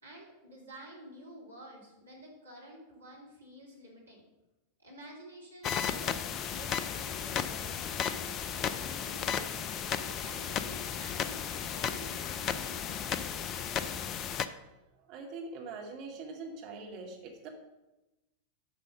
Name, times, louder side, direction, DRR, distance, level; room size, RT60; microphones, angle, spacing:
voice 1, 0.0-4.2 4.8-9.5 9.9-13.4, right 1 dB, 75° right, -2 dB, 2.9 m, -50 dB
sound 1, 5.6-14.5, left 8 dB, 30° left, 0.5 m, -34 dB
voice 2, 15.0-17.5, right 3 dB, 40° right, 1 dB, 2.1 m, -43 dB
9.1 x 5.4 x 6.2 m, 1.0 s
figure-of-eight pair, 90°, 0 cm